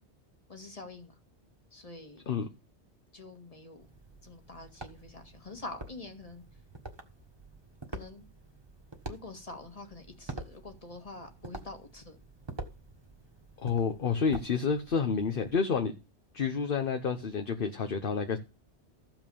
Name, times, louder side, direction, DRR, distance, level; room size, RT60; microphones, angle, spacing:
voice 1, 0.5-1.2 1.7-2.3 3.1-3.9 4.2-6.4 7.9-8.2 9.1-12.2, left 2 dB, 30° left, 1.9 m, -46 dB
sound 1, 3.8-15.6, right 2 dB, 25° right, 1.5 m, -47 dB
voice 2, 13.6-15.9 16.3-18.4, left 5 dB, 55° left, 1.1 m, -29 dB
14.0 x 6.0 x 7.0 m
omnidirectional pair, 1.2 m